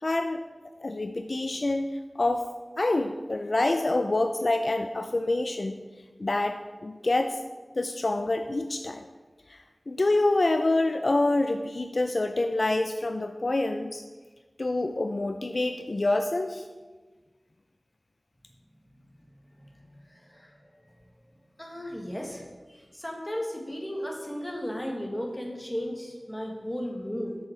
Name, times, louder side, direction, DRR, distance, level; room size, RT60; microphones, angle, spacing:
voice 1, 0.0-0.4 0.8-2.5 2.8-5.8 6.2-7.4 7.8-9.0 9.5-14.0 14.6-16.6, left 2 dB, 60° left, 6 dB, 0.4 m, -27 dB
voice 2, 19.6-20.5 21.6-27.4, equal, 15° left, 0 dB, 1.4 m, -35 dB
7.0 x 6.4 x 4.3 m, 1.3 s
wide cardioid pair, 65°, 0 cm